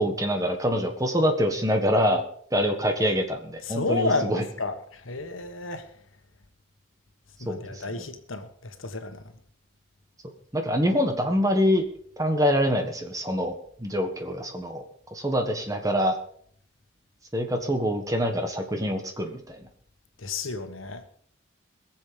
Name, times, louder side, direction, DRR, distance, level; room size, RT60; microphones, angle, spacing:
voice 1, 0.0-2.2 2.5-4.4 7.5-7.7 10.5-11.8 12.2-13.5 13.8-14.8 15.1-16.2 17.3-19.6, equal, 15° right, 1.5 m, -25 dB
voice 2, 3.6-5.9 7.4-9.2 20.2-21.0, left 3 dB, 90° left, 1.4 m, -31 dB
21.5 x 7.4 x 5.1 m
head